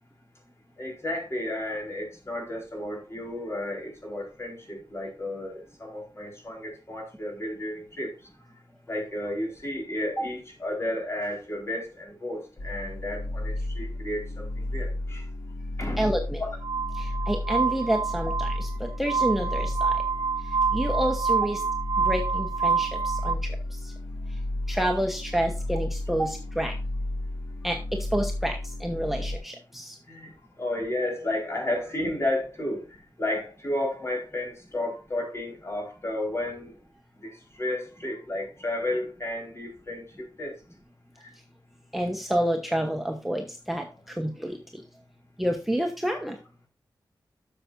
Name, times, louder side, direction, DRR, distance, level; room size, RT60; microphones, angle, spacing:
voice 1, 0.8-8.1 8.9-15.2 15.8-16.1 16.4-16.5 26.2-26.3 30.1-36.7 37.2-40.5 41.2-41.3, left 1 dB, 35° left, 0 dB, 4.4 m, -32 dB
sound 1, 12.6-29.4, left 1 dB, 70° left, 1.8 m, -33 dB
voice 2, 16.0-16.4 16.9-20.0 20.7-21.6 22.0-23.9 24.7-26.7 27.6-27.8 28.1-30.0 41.9-44.8 45.4-46.4, right 1 dB, 5° right, 2 dB, 1.0 m, -29 dB
Glass, 16.6-23.3, right 5 dB, 90° right, 0.5 m, -27 dB
12.0 x 6.9 x 2.6 m, 0.31 s
wide cardioid pair, 105°, 8 cm